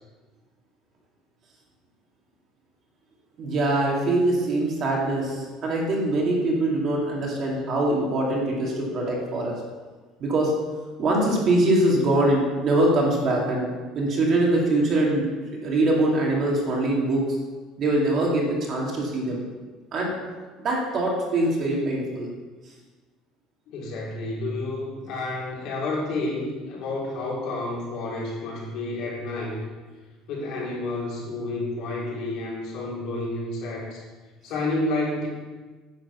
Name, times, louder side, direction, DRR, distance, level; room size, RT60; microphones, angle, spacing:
voice 1, 3.4-9.6 10.2-10.5 11.0-13.7 13.9-15.3 15.6-17.4 17.8-19.5 19.9-20.1 20.6-22.3, right 1 dB, 35° right, -2 dB, 2.5 m, -23 dB
voice 2, 23.7-29.6 30.3-34.0 34.4-35.3, left 2 dB, 55° left, -4 dB, 3.9 m, -30 dB
10.5 x 7.2 x 7.0 m, 1.3 s
cardioid pair, 175°, 0 cm